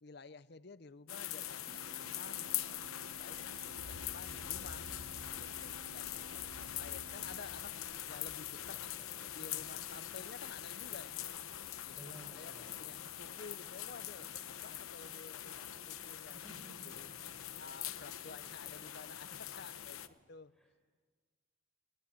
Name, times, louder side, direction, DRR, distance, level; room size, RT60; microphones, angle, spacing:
voice 1, 0.0-4.9 5.3-7.8 8.1-8.8 9.3-11.4 11.8-12.5 12.8-16.4 16.9-17.1 17.6-20.5, left 4 dB, 50° left, 0.7 m, -53 dB
sound 1, 1.1-20.1, left 11 dB, 85° left, 1.0 m, -43 dB
sound 2, 1.2-20.2, right 1 dB, 40° right, 2.4 m, -68 dB
sound 3, 1.7-7.7, right 5 dB, 80° right, 0.7 m, -58 dB
voice 2, 8.7-9.5 11.9-12.8 16.3-17.2 20.5-20.7, right 1 dB, 5° left, 5.3 m, -56 dB
21.0 x 20.5 x 9.6 m
head